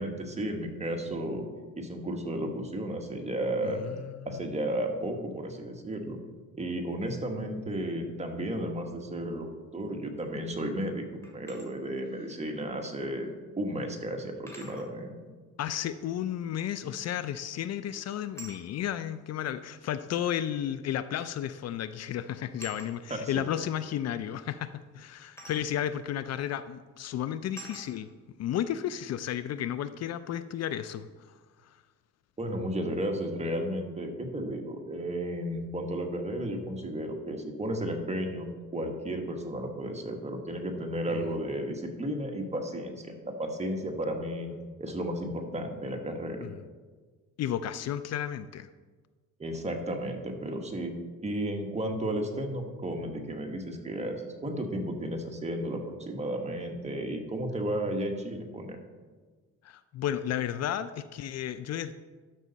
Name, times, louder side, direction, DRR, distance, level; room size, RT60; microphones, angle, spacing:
voice 1, 0.0-1.4 1.7-3.8 4.2-6.2 6.5-9.5 9.7-13.3 13.6-15.1 23.1-23.4 32.4-44.5 44.8-46.5 49.4-50.9 51.2-58.8, right 1 dB, 20° right, 2 dB, 1.4 m, -33 dB
voice 2, 3.6-4.4 15.6-28.1 28.4-31.1 41.1-41.3 46.4-46.6 47.4-48.7 59.6-61.9, left 10 dB, 60° left, 13 dB, 0.4 m, -33 dB
sound 1, 11.2-11.7 13.2-13.3 14.5-14.9 17.1-17.4 18.3-18.6 19.8-19.9 21.2-21.4 21.7-21.9 22.6-22.9 25.4-25.6 26.4-26.6 27.6-27.9, right 2 dB, 10° left, 2.3 m, -47 dB
12.5 x 5.4 x 4.1 m, 1.4 s
cardioid pair, 90°, 30 cm